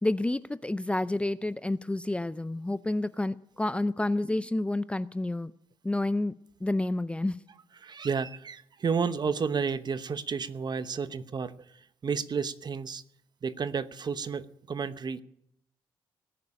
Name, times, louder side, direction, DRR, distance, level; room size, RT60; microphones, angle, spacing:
voice 1, 0.0-5.5 5.8-6.3 6.6-7.4, left 2 dB, 10° left, 15 dB, 0.5 m, -29 dB
voice 2, 7.8-13.0 13.4-15.2, right 5 dB, 45° right, 13 dB, 0.9 m, -31 dB
19.0 x 6.8 x 10.0 m, 0.74 s
supercardioid pair, 70°, 10 cm